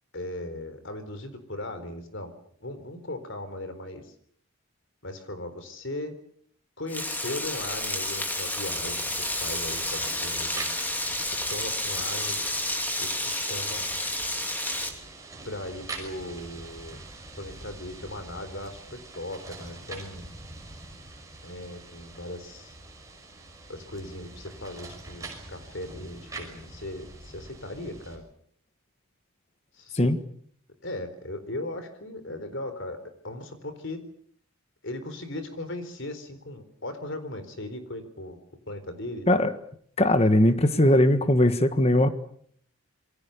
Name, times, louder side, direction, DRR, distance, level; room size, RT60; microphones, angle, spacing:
voice 1, 0.1-2.3 2.6-4.1 5.0-6.1 6.8-10.8 11.2-12.4 13.0-13.9 15.4-17.0 17.4-20.3 21.4-22.7 23.7-28.2 29.7-30.1 30.8-33.0 33.2-34.0 34.8-38.4 38.7-39.3, left 1 dB, 60° left, 4.1 m, -38 dB
Frying (food), 6.9-14.9, left 1 dB, 10° left, 3.0 m, -30 dB
sound 1, 8.7-28.2, right 3 dB, 15° right, 5.9 m, -44 dB
voice 2, 40.0-42.1, left 1 dB, 30° left, 1.6 m, -20 dB
27.5 x 22.5 x 6.9 m
head